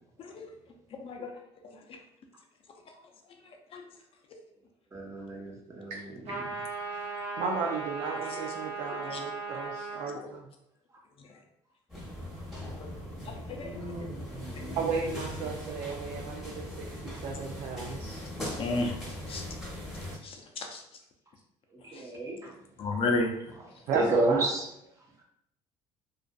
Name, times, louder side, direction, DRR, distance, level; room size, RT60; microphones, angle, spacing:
voice 1, 0.2-0.5 1.0-1.3 1.6-2.0 3.7-3.8 8.3-8.4 8.9-9.2 10.1-10.3 11.2-11.3 12.8-13.0 13.2-14.2 14.5-14.8 18.6-19.0 19.3-19.4 20.2-20.8 21.9-22.0 22.8-23.3, left 2 dB, 45° left, 3 dB, 0.5 m, -33 dB
voice 2, 4.9-6.1 6.4-6.6 12.6-12.8 13.6-14.8 21.9-22.5 23.9-24.7, right 2 dB, 25° right, -2 dB, 0.8 m, -32 dB
sound 1, 6.2-10.1, right 3 dB, 50° right, 1.1 m, -37 dB
voice 3, 7.4-10.5 14.8-18.2 23.9-24.5, right 5 dB, 70° right, -1 dB, 0.4 m, -34 dB
sound 2, 11.9-20.2, left 1 dB, ahead, 1.1 m, -40 dB
2.4 x 2.4 x 2.2 m, 0.78 s
supercardioid pair, 85°, 13 cm